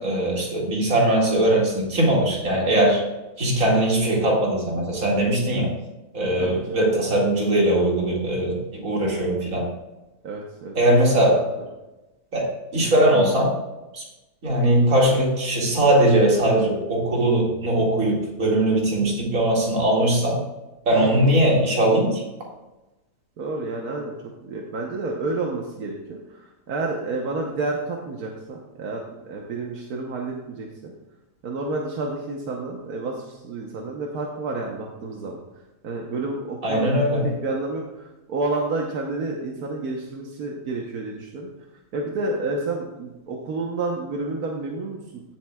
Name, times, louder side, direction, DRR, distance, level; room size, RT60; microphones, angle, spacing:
voice 1, 0.0-3.0 3.4-5.8 6.1-9.7 10.7-11.4 12.3-13.6 13.9-14.0 14.4-20.4 20.9-22.2 36.6-37.3, right 1 dB, 65° right, -2 dB, 2.6 m, -20 dB
voice 2, 10.2-10.7 11.1-11.2 23.4-30.9 31.4-35.4 35.8-36.9 37.2-41.5 41.9-45.2, right 3 dB, 90° right, 0 dB, 1.5 m, -30 dB
15.5 x 7.5 x 2.3 m, 1.0 s
omnidirectional pair, 1.5 m